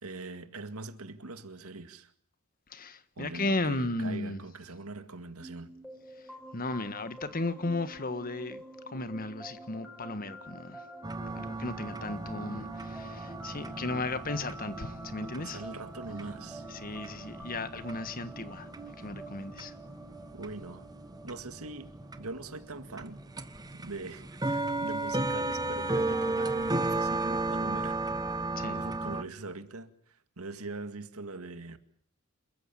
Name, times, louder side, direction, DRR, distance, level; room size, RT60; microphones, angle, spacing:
voice 1, 0.0-2.1 3.2-5.8 15.2-16.7 20.3-20.9 21.2-23.2 23.7-28.0 28.6-31.8, right 3 dB, 85° right, 2.0 m, -42 dB
voice 2, 2.7-4.4 6.2-10.9 11.3-15.6 16.7-18.7 19.0-19.7 28.6-28.8, left 2 dB, 40° left, 1.5 m, -35 dB
sound 1, 5.4-24.9, right 1 dB, ahead, 6.3 m, -48 dB
sound 2, 11.0-29.2, right 2 dB, 20° right, 1.3 m, -35 dB
28.5 x 14.5 x 8.6 m
head